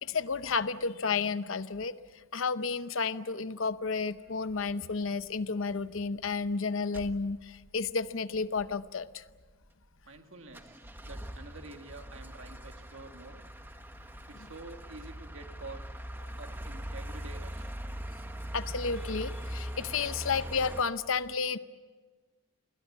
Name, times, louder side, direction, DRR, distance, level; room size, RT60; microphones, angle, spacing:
voice 1, 0.0-2.0 2.3-9.2 18.5-21.6, left 5 dB, 70° left, 13 dB, 0.8 m, -32 dB
sound 1, 4.5-4.7 5.2-5.4 5.7-5.8 6.1-6.5 6.9-7.7 8.1-8.2 8.3-8.8 9.3-10.2 10.5-20.8, equal, 10° right, 1.2 m, -41 dB
voice 2, 10.1-13.4 14.3-15.9 16.4-17.7, right 2 dB, 65° right, 5 dB, 1.9 m, -48 dB
28.5 x 21.0 x 7.4 m, 1.3 s
head